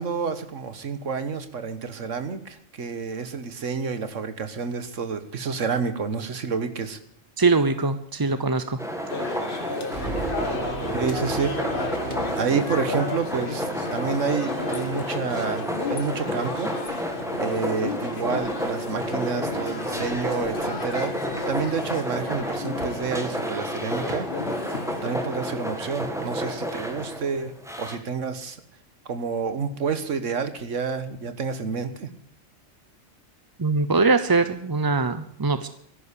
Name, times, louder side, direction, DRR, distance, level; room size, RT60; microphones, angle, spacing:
voice 1, 0.0-7.0 10.9-11.5 12.4-16.7 17.4-21.1 21.5-24.3 25.0-27.5 27.8-28.6 29.1-32.1, right 5 dB, 70° right, 10 dB, 1.7 m, -29 dB
voice 2, 7.4-8.8 33.6-35.7, right 3 dB, 30° right, 11 dB, 0.4 m, -22 dB
sound 1, 8.8-28.0, equal, ahead, 1.9 m, -31 dB
sound 2, 9.1-25.2, left 4 dB, 45° left, 1.5 m, -34 dB
sound 3, 9.9-13.4, right 3 dB, 55° right, 2.4 m, -34 dB
14.0 x 11.0 x 8.4 m, 0.64 s
omnidirectional pair, 1.3 m